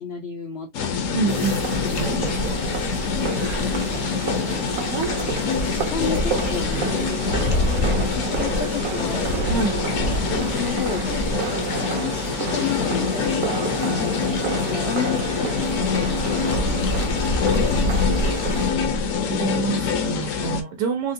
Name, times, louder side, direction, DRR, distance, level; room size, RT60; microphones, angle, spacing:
voice 1, 0.0-1.4 5.7-9.3 10.1-11.3 11.7-13.5 14.5-17.3, left 7 dB, 80° left, 0.5 m, -33 dB
sound 1, 0.7-20.6, left 4 dB, 65° left, 0.9 m, -24 dB
voice 2, 1.1-2.6 9.5-9.8 19.2-21.1, right 5 dB, 80° right, 1.4 m, -27 dB
sound 2, 1.3-18.7, right 6 dB, 65° right, 1.2 m, -30 dB
4.0 x 2.2 x 2.6 m
omnidirectional pair, 1.8 m